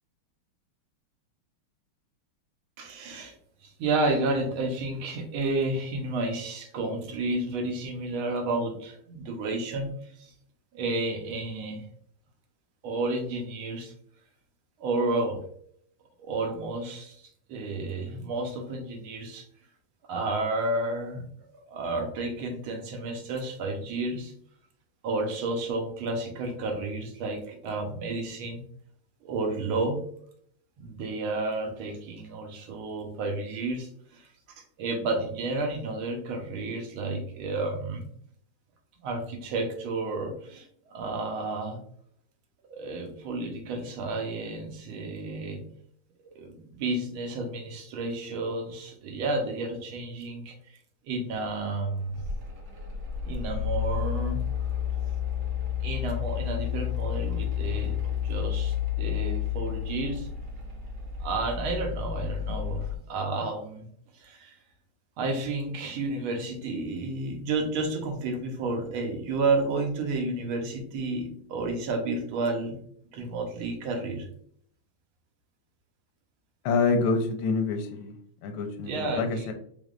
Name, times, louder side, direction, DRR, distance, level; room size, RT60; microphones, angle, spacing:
voice 1, 2.8-3.3 3.6-9.9 10.2-10.3 10.7-11.8 12.8-13.9 14.8-15.4 16.2-17.2 17.5-19.5 20.1-21.3 21.7-24.3 25.0-28.6 29.2-30.0 30.8-34.3 34.6-38.0 39.0-41.8 42.7-45.6 46.4-50.5 51.0-52.2 53.3-54.4 55.8-60.3 61.2-63.9 64.1-64.5 65.2-72.8 73.1-74.3 78.8-79.5, right 2 dB, 75° right, 3 dB, 1.7 m, -31 dB
Mechanical fan, 51.7-63.0, left 9 dB, 50° right, 1.2 m, -31 dB
voice 2, 76.6-79.5, left 4 dB, 85° left, 4 dB, 1.5 m, -27 dB
4.3 x 3.4 x 2.4 m, 0.63 s
omnidirectional pair, 2.4 m